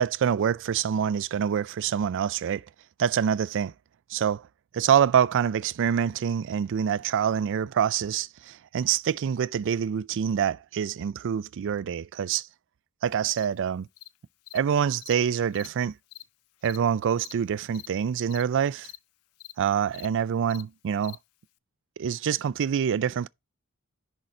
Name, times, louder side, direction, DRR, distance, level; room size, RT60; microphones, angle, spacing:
voice 1, 0.0-2.7 3.0-3.7 4.1-4.5 4.7-12.5 13.0-13.9 14.5-15.9 16.6-18.9 19.6-21.2 22.0-23.3, right 8 dB, 60° right, 0.4 m, -26 dB
Cricket, 13.3-13.5 14.0-14.1 14.5-14.6 15.0-15.1 15.5-15.7 16.1-16.2 16.6-16.8 17.2-17.3 17.7-17.9 18.3-18.4 18.8-19.0 19.4-19.5 19.9-20.1 20.5-20.6 21.0-21.2, left 18 dB, 80° left, 0.4 m, -44 dB
10.5 x 3.9 x 4.2 m
head